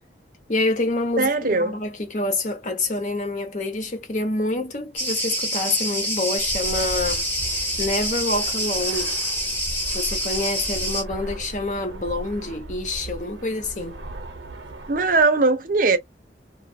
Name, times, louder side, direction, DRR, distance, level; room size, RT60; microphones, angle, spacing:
voice 1, 0.5-9.2 9.9-14.0, left 2 dB, 45° left, 0.7 m, -27 dB
voice 2, 1.2-1.8 14.9-16.0, right 3 dB, 50° right, 0.6 m, -19 dB
Cricket, 5.0-11.0, equal, 10° left, 1.0 m, -26 dB
Fixed-wing aircraft airplane, 6.4-15.2, right 1 dB, 90° right, 0.8 m, -37 dB
2.6 x 2.3 x 2.6 m
head